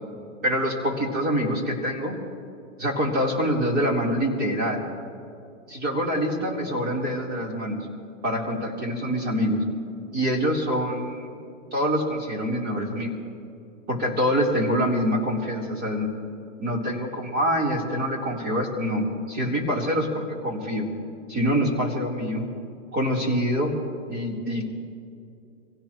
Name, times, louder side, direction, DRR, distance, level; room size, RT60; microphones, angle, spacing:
voice 1, 0.4-2.2 2.8-4.8 5.7-7.8 8.2-9.6 10.1-11.3 11.7-13.1 13.9-16.1 16.6-20.9 21.3-22.4 22.9-23.7 24.1-24.6, equal, 25° right, -1 dB, 3.9 m, -25 dB
26.5 x 17.0 x 3.1 m, 2.6 s
hypercardioid pair, 135°, 38 cm